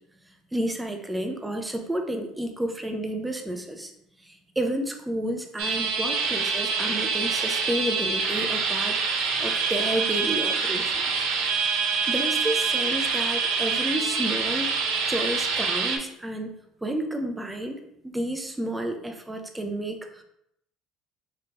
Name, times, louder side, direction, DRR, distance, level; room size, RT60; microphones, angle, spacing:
voice 1, 0.5-3.9 4.2-11.3 12.1-16.5 16.8-20.2, right 1 dB, 5° right, 4 dB, 0.5 m, -31 dB
sound 1, 5.6-16.0, right 5 dB, 85° right, 0.7 m, -26 dB
3.8 x 3.5 x 2.8 m, 0.77 s
cardioid pair, 155°, 0 cm